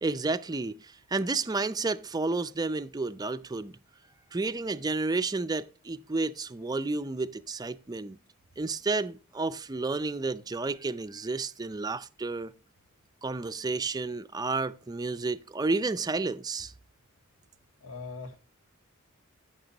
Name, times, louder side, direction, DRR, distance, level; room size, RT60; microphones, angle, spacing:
voice 1, 0.0-3.7 4.3-8.2 8.6-12.5 13.2-16.7, right 3 dB, 20° right, 0.4 m, -31 dB
voice 2, 17.8-18.4, left 4 dB, 85° left, 2.3 m, -40 dB
14.5 x 6.6 x 2.8 m
head